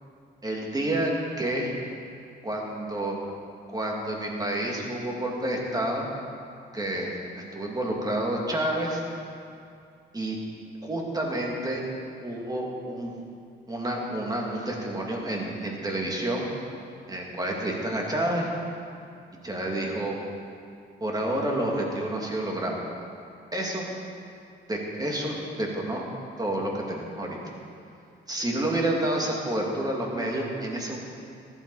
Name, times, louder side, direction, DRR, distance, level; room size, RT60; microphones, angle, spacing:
voice 1, 0.4-1.7 2.4-3.2 3.7-6.1 6.7-9.0 10.1-10.4 10.8-11.8 12.2-13.1 13.7-16.5 17.1-18.5 19.4-20.2 21.0-22.8 23.5-23.9 24.7-26.1 26.4-27.4 28.3-31.0, right 1 dB, 20° right, -1 dB, 2.4 m, -29 dB
14.5 x 11.0 x 4.2 m, 2.4 s
cardioid pair, 90°, 20 cm